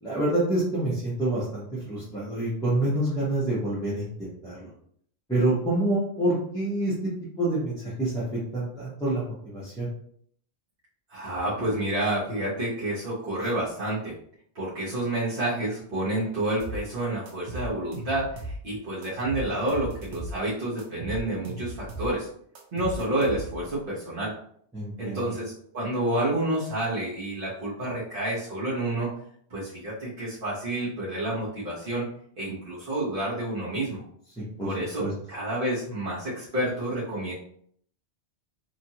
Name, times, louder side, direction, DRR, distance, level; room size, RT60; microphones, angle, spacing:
voice 1, 0.0-4.7 5.3-7.1 7.4-8.2 8.5-9.9 24.7-25.2 34.4-34.7 35.0-35.1, right 1 dB, 5° left, -10 dB, 0.7 m, -27 dB
voice 2, 11.1-14.2 14.5-22.3 22.7-24.3 25.0-29.1 29.5-32.1 32.4-34.0 34.6-37.3, right 1 dB, 55° right, -9 dB, 1.0 m, -29 dB
sound 1, 16.6-16.8 17.3-18.6 19.0-20.4 20.8-22.1 22.5-23.7, right 1 dB, 85° right, 0.9 m, -36 dB
2.9 x 2.4 x 2.7 m, 0.63 s
omnidirectional pair, 1.1 m